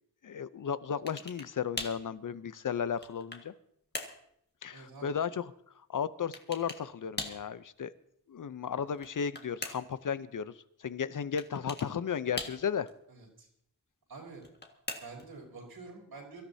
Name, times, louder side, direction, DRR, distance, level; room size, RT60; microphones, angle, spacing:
voice 1, 0.2-3.5 4.6-5.5 5.9-7.9 8.3-10.5 10.8-12.9, left 7 dB, 60° left, 0.7 m, -34 dB
sound 1, 1.1-1.5 1.8-2.1 2.7-3.5 3.9-4.2 6.3-6.9 7.2-7.5 8.9-10.0 11.4-11.9 12.4-12.9 14.3-15.3, left 2 dB, 30° left, 1.8 m, -41 dB
voice 2, 4.7-5.2 13.1-13.5 14.1-14.4 15.0-16.4, right 3 dB, 85° right, 4.4 m, -47 dB
24.5 x 13.5 x 2.8 m
wide cardioid pair, 70°, 36 cm